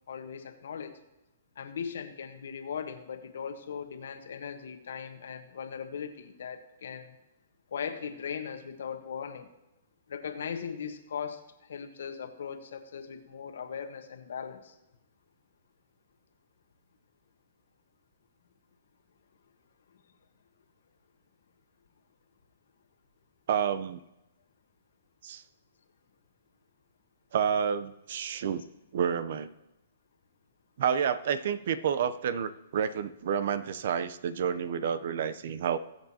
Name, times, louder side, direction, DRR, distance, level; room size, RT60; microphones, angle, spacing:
voice 1, 0.1-1.0 1.6-7.1 7.7-9.5 10.1-14.7, left 7 dB, 75° left, 7 dB, 1.3 m, -39 dB
voice 2, 23.5-24.0 25.2-25.4 27.3-28.6 28.9-29.5 30.8-35.8, right 8 dB, 60° right, 14 dB, 0.6 m, -29 dB
21.5 x 8.0 x 2.9 m, 0.94 s
hypercardioid pair, 140°, 0 cm